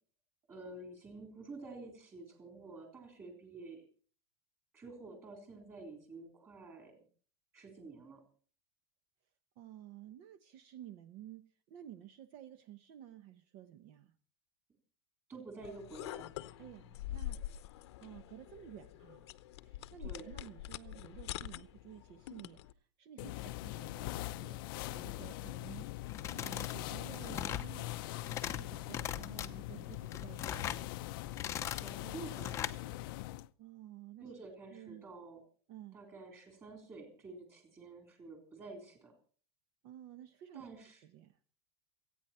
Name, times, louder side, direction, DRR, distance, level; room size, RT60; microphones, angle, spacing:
voice 1, 0.5-3.8 4.7-6.9 7.5-8.2 15.3-16.3 20.0-20.3 31.7-32.9 34.2-35.4 35.9-39.1 40.5-41.0, right 3 dB, 15° right, 3 dB, 3.7 m, -50 dB
voice 2, 9.6-14.1 16.6-17.4 18.0-19.3 19.6-22.6 23.0-24.6 24.9-27.9 28.2-30.9 33.6-34.3 34.7-35.0 35.7-36.0 39.8-40.7 41.1-41.5, right 11 dB, 40° right, 12 dB, 1.0 m, -53 dB
sound 1, 15.6-22.7, left 13 dB, 70° left, 0.9 m, -45 dB
sound 2, 23.2-33.5, left 17 dB, 50° left, 0.6 m, -42 dB
sound 3, 26.1-26.8 27.1-27.7 28.1-28.6 28.9-29.5 29.9-30.8 31.2-31.9 32.3-32.8, left 10 dB, 20° left, 0.8 m, -39 dB
28.5 x 9.5 x 4.4 m, 0.43 s
supercardioid pair, 175°, 14 cm